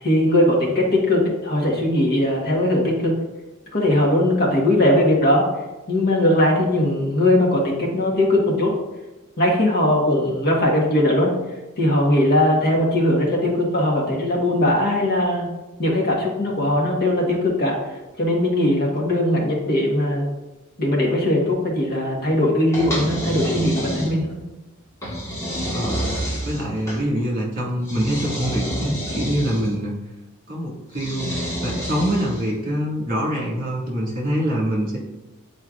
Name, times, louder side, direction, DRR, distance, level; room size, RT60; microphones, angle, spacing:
voice 1, 0.0-3.1 3.7-5.5 5.9-8.7 9.4-11.3 11.8-15.5 15.8-17.8 18.2-20.2 20.8-24.4, left 1 dB, 45° left, -2 dB, 1.4 m, -19 dB
sound 1, 22.7-24.4 25.0-27.0 27.8-29.7 30.9-32.5, equal, 15° left, 1.5 m, -28 dB
voice 2, 25.7-26.1 26.4-29.9 30.5-35.0, equal, 40° right, -4 dB, 2.0 m, -25 dB
9.5 x 4.4 x 2.4 m, 1.1 s
head